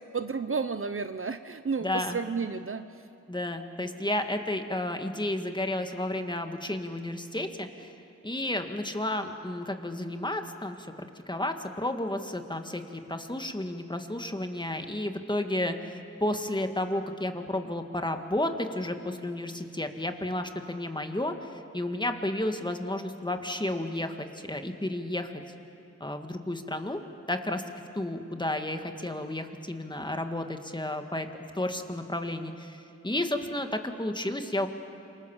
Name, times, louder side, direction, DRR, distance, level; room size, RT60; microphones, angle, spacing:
voice 1, 0.1-2.8, right 5 dB, 45° right, 10 dB, 0.9 m, -31 dB
voice 2, 1.8-2.2 3.3-7.9 8.2-25.3 26.0-27.0 27.3-27.6 28.0-31.3 31.6-34.7, left 1 dB, 15° left, 6 dB, 1.9 m, -32 dB
27.5 x 24.0 x 7.2 m, 2.6 s
wide cardioid pair, 70°, 31 cm